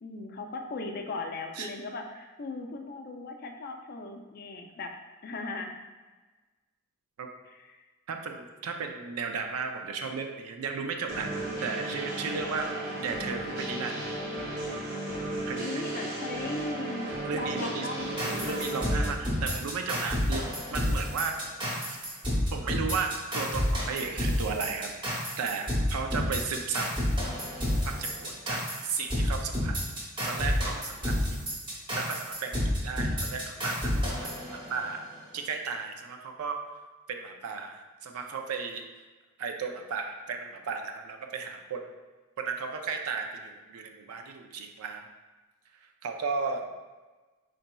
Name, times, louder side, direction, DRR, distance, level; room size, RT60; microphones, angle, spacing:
voice 1, 0.0-4.9 5.2-5.8 7.5-7.8 15.6-19.1, left 3 dB, 45° left, 3 dB, 0.4 m, -38 dB
voice 2, 8.1-11.3 11.6-13.9 15.5-16.0 17.2-17.9 18.4-20.4 20.7-21.4 21.9-22.0 22.5-26.9 27.8-29.8 30.2-31.4 31.9-35.0 35.3-36.6 37.1-38.8 39.4-41.9 42.4-45.0 46.0-46.6, right 5 dB, 80° right, 4 dB, 0.4 m, -34 dB
sound 1, 11.1-19.1, right 1 dB, 55° right, 0.9 m, -35 dB
sound 2, 18.2-35.1, left 1 dB, 20° right, 0.9 m, -30 dB
4.1 x 3.9 x 2.2 m, 1.3 s
head